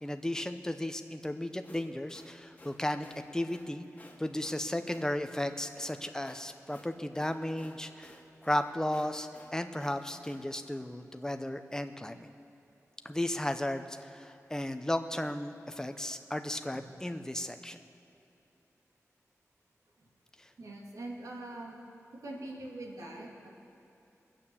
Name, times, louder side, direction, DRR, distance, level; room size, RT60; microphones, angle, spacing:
voice 1, 0.0-3.1 3.3-3.8 4.2-12.3 13.0-17.8 20.4-20.5, left 1 dB, 10° left, 8 dB, 0.8 m, -35 dB
sound 1, 1.4-10.4, left 1 dB, 25° left, 1.9 m, -56 dB
voice 2, 20.6-21.8 22.2-23.5, right 2 dB, 85° right, -2 dB, 2.7 m, -43 dB
22.0 x 8.9 x 7.2 m, 2.9 s
wide cardioid pair, 100°, 6 cm